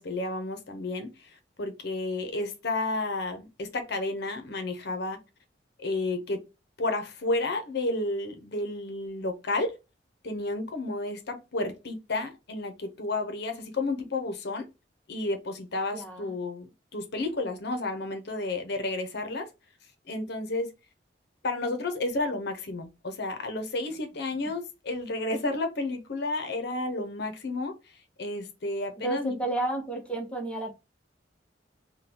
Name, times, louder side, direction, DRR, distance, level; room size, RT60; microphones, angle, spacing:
voice 1, 0.0-5.2 5.8-6.4 6.8-9.7 10.2-14.7 15.1-19.5 20.1-20.7 21.4-27.7 28.2-29.3, left 2 dB, 65° left, 0.7 m, -31 dB
voice 2, 15.9-16.4 29.0-30.7, right 2 dB, 5° left, 0.9 m, -32 dB
3.7 x 2.3 x 2.7 m
head